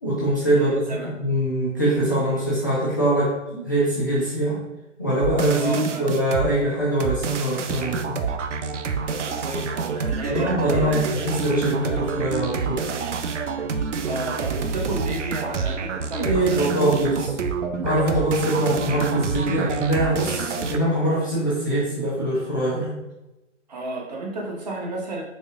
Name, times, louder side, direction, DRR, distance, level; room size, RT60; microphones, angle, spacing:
voice 1, 0.0-0.8 1.2-4.6 5.0-8.2 10.3-12.9 16.2-17.3 17.8-22.9, right 1 dB, 15° left, -9 dB, 0.5 m, -23 dB
voice 2, 0.5-1.1 5.5-6.1 9.1-11.1 14.0-17.3 17.8-17.9 23.7-25.2, right 2 dB, 35° right, -1 dB, 0.8 m, -33 dB
sound 1, 5.2-6.5 7.0-20.8, right 5 dB, 70° right, 0.5 m, -27 dB
4.1 x 2.9 x 2.6 m, 0.95 s
figure-of-eight pair, 145°, 37 cm